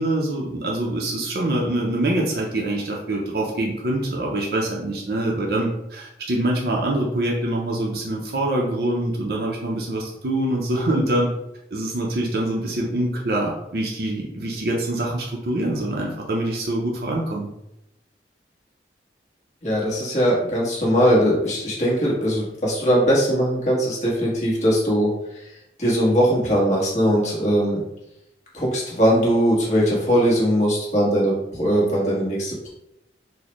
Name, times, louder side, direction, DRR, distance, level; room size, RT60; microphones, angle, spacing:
voice 1, 0.0-11.3 11.7-17.5, right 1 dB, 60° right, -2 dB, 0.5 m, -24 dB
voice 2, 19.6-25.5 25.8-27.8 28.5-32.7, equal, 40° left, -5 dB, 1.1 m, -20 dB
4.0 x 2.1 x 3.0 m, 0.85 s
head